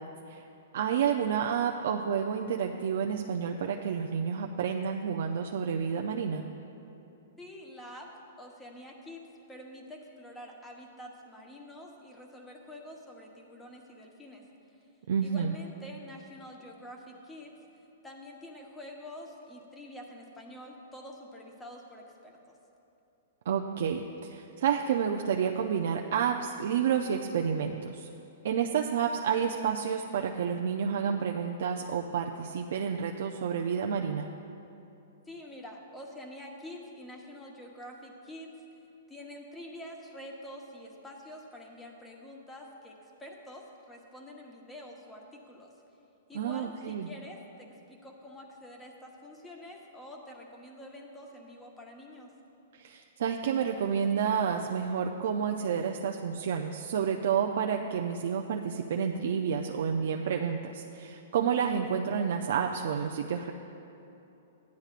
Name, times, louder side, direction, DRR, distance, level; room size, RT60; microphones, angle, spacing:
voice 1, 0.7-6.5 15.1-15.6 23.5-28.1 28.4-34.3 46.3-47.1 52.7-63.5, right 7 dB, 65° right, 2 dB, 0.4 m, -30 dB
voice 2, 7.4-8.1 8.4-14.4 15.2-17.5 18.0-22.6 35.3-38.8 39.1-45.7 46.3-52.3, left 1 dB, 10° left, 0 dB, 1.0 m, -47 dB
14.5 x 10.5 x 2.5 m, 2.9 s
hypercardioid pair, 150°, 0 cm